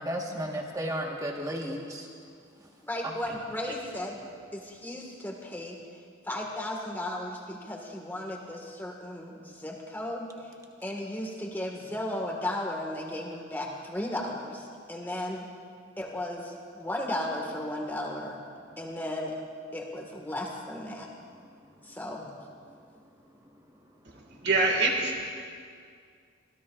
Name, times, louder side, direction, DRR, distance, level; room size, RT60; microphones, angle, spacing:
voice 1, 0.0-2.1 3.0-3.1, equal, 15° right, 0 dB, 1.4 m, -33 dB
voice 2, 2.9-4.2 4.5-5.8 6.2-10.3 10.8-15.5 16.0-18.4 18.8-19.4 19.7-21.1 21.9-22.3, left 1 dB, 10° left, 0 dB, 1.7 m, -35 dB
voice 3, 24.4-25.3, right 3 dB, 55° right, 0 dB, 2.0 m, -25 dB
24.0 x 16.0 x 2.5 m, 2.2 s
head